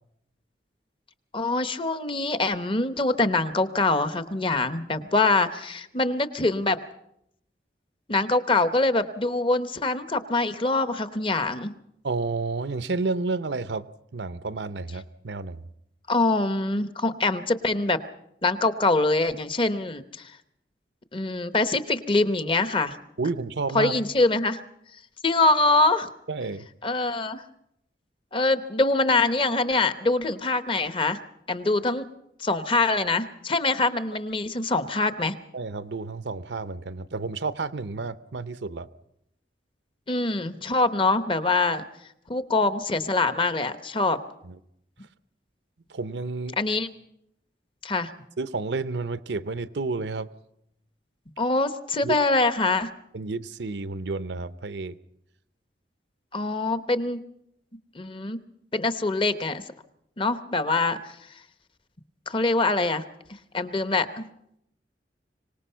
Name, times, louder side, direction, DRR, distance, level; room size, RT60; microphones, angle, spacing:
voice 1, 1.3-6.8 8.1-11.7 16.1-18.0 18.4-20.3 21.1-23.0 23.7-24.6 25.2-26.1 26.8-27.4 28.3-31.2 31.5-32.0 32.4-35.3 40.1-41.9 42.3-44.2 46.6-46.9 47.8-48.1 51.4-52.9 56.3-57.2 57.9-58.4 58.7-59.6 60.2-61.2 62.3-63.0 63.5-64.3, left 3 dB, 30° left, 11 dB, 0.8 m, -24 dB
voice 2, 12.0-13.8 14.1-15.6 23.2-24.0 26.3-26.7 35.5-38.9 44.4-44.6 45.9-46.6 48.4-50.3 52.0-52.2 53.1-55.0, right 3 dB, 80° right, 14 dB, 0.7 m, -30 dB
24.5 x 18.5 x 5.6 m, 0.77 s
head